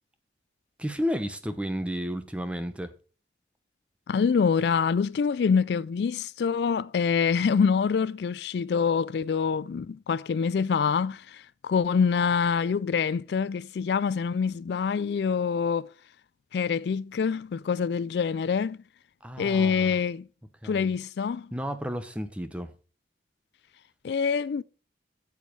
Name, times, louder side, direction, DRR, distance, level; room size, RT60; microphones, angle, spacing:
voice 1, 0.8-2.9 19.2-20.0 20.6-20.9 21.5-22.7, equal, 5° right, 0.9 m, -32 dB
voice 2, 4.1-15.9 16.5-18.8 19.4-20.3 20.6-21.5 24.0-24.6, left 6 dB, 70° left, 0.3 m, -25 dB
9.2 x 7.4 x 4.6 m
head